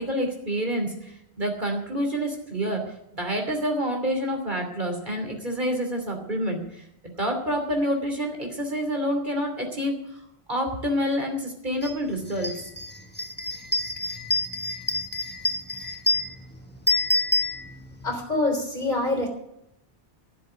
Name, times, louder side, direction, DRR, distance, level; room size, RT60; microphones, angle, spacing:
voice 1, 0.0-6.8 7.2-10.0 10.5-12.7, equal, 50° right, 3 dB, 3.2 m, -28 dB
sound 1, 11.8-12.0 12.3-18.1, left 1 dB, 10° left, 1.2 m, -27 dB
voice 2, 18.0-19.3, left 2 dB, 45° left, 3 dB, 3.8 m, -25 dB
15.5 x 7.5 x 9.4 m, 0.82 s
omnidirectional pair, 1.1 m